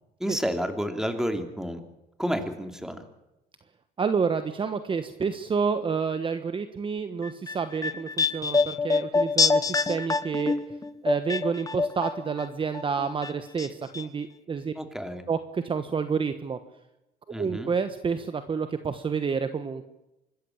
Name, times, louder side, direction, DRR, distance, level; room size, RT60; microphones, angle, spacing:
voice 1, 0.2-1.8 2.2-3.0 14.8-15.2 17.3-17.7, equal, 5° right, 6 dB, 2.9 m, -30 dB
voice 2, 4.0-10.5 11.0-14.7 15.3-16.6 17.4-19.8, right 5 dB, 30° right, 10 dB, 1.2 m, -29 dB
sound 1, 7.2-12.5 12.7-13.7 13.9-14.0, left 4 dB, 20° left, 1.1 m, -26 dB
25.5 x 14.0 x 8.7 m, 0.93 s
cardioid pair, 110°, 17 cm